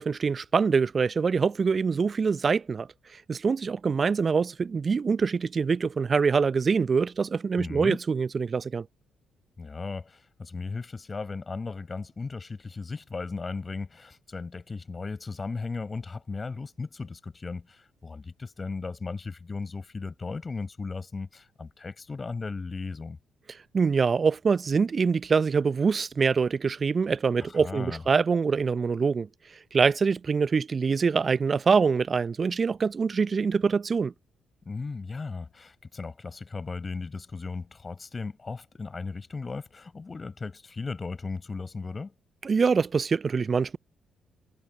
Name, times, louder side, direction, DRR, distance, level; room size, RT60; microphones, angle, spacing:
voice 1, 0.0-8.9 23.7-29.3 29.7-34.1 42.4-43.8, right 5 dB, 40° right, 0.6 m, -24 dB
voice 2, 7.6-8.0 9.6-23.2 27.4-28.0 34.6-42.1, left 4 dB, 35° left, 4.5 m, -36 dB
figure-of-eight pair, 40°, 0 cm